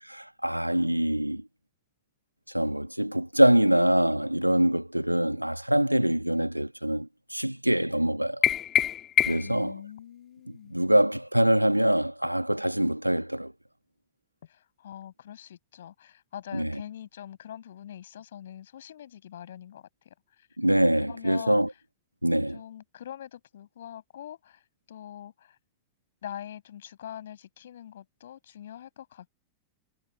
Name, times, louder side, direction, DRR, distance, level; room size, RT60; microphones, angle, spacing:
voice 1, 0.1-1.4 2.5-8.4 9.3-9.8 10.7-13.5 16.5-16.7 20.6-21.7 22.2-22.6, right 1 dB, 90° right, 2.0 m, -24 dB
sound 1, 8.4-9.6, left 11 dB, 30° left, 2.3 m, -25 dB
voice 2, 9.4-10.7 14.4-20.5 21.0-21.6 22.5-24.6 24.9-25.6 26.2-29.3, left 10 dB, 60° left, 6.7 m, -43 dB
figure-of-eight pair, 90°, 0 cm